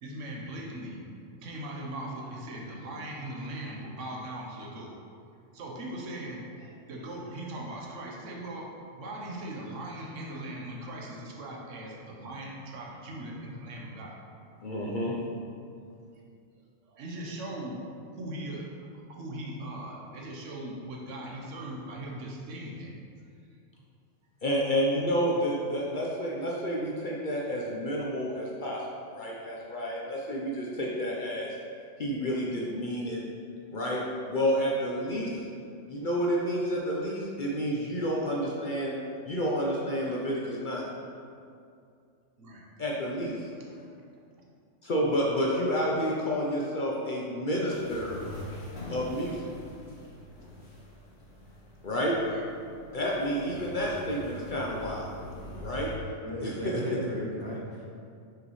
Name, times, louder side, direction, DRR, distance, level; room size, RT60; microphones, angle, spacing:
voice 1, 0.0-1.0 1.4-5.0 5.5-14.2 16.8-17.8 18.1-22.9 42.4-42.6 43.5-43.7 52.3-52.5, right 1 dB, 80° right, -1 dB, 1.2 m, -39 dB
voice 2, 14.6-15.1 24.4-28.8 29.1-31.5 32.0-33.2 33.7-34.0 34.3-35.5 35.9-39.0 39.2-40.8 42.8-43.3 44.8-48.2 48.9-49.4 49.9-50.0 51.8-52.1 52.9-55.0 55.6-55.9 56.4-56.5, equal, 50° left, -4 dB, 0.7 m, -30 dB
sound 1, 47.7-55.9, equal, 75° left, 1.8 m, -44 dB
voice 3, 56.2-57.9, right 1 dB, 20° right, -5 dB, 1.1 m, -35 dB
6.4 x 4.9 x 3.1 m, 2.4 s
omnidirectional pair, 1.3 m